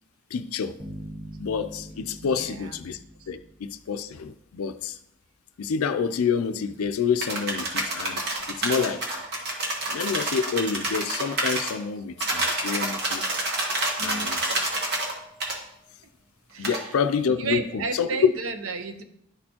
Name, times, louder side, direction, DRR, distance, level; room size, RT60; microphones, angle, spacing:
voice 1, 0.3-0.8 1.4-3.0 3.3-5.0 5.6-8.2 8.5-9.0 9.9-13.2 14.0-14.7 16.6-18.3, left 6 dB, 85° left, 0.4 m, -28 dB
sound 1, 0.8-4.2, equal, 5° right, 1.2 m, -43 dB
voice 2, 2.2-2.8 3.2-3.3 14.0-14.5 16.5-17.0 17.3-19.0, right 4 dB, 70° right, 0.7 m, -33 dB
sound 2, 7.2-11.7 12.2-15.1 15.4-15.6 16.6-16.8, right 2 dB, 50° right, 1.3 m, -28 dB
11.0 x 4.3 x 2.9 m
head